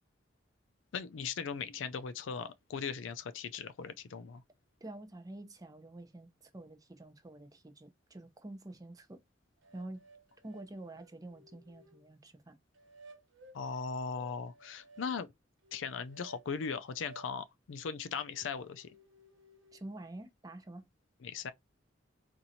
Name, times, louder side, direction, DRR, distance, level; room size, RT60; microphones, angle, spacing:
voice 1, 0.9-4.4 13.5-15.3 15.7-18.9 21.2-21.5, left 6 dB, 80° left, 0.4 m, -38 dB
voice 2, 4.8-9.2 9.7-10.0 10.4-12.6 19.7-20.8, right 1 dB, 20° right, 0.6 m, -48 dB
sound 1, 9.6-12.0 12.7-15.1 15.6-17.3 17.8-19.8, right 2 dB, 75° right, 0.9 m, -58 dB
4.3 x 2.5 x 2.7 m
head